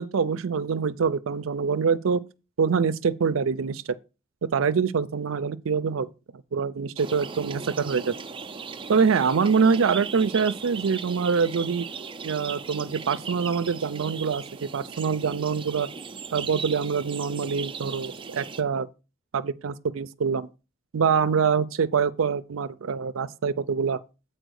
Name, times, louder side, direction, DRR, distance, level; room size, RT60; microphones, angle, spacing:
voice 1, 0.0-2.2 2.6-3.9 4.4-6.1 6.5-8.1 8.9-11.9 12.2-15.9 16.3-18.9 19.3-20.5 20.9-24.0, right 5 dB, 75° right, 0.5 m, -25 dB
sound 1, 7.0-18.6, right 5 dB, 25° right, 0.5 m, -38 dB
8.0 x 4.5 x 6.3 m
head